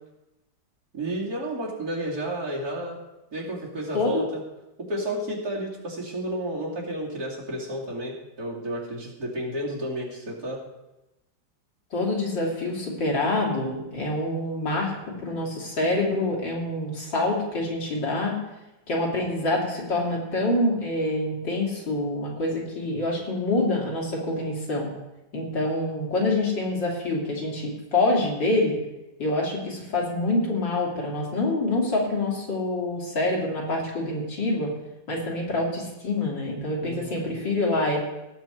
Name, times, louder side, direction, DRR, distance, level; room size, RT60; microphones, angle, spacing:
voice 1, 0.9-3.0 3.3-4.4 4.9-10.6 36.8-37.2, right 1 dB, 55° right, -4 dB, 3.3 m, -31 dB
voice 2, 3.9-4.3 11.9-18.4 18.9-24.9 25.3-28.8 29.2-34.7 35.1-38.0, left 2 dB, 75° left, -3 dB, 3.6 m, -26 dB
17.5 x 7.8 x 4.6 m, 0.97 s
omnidirectional pair, 2.0 m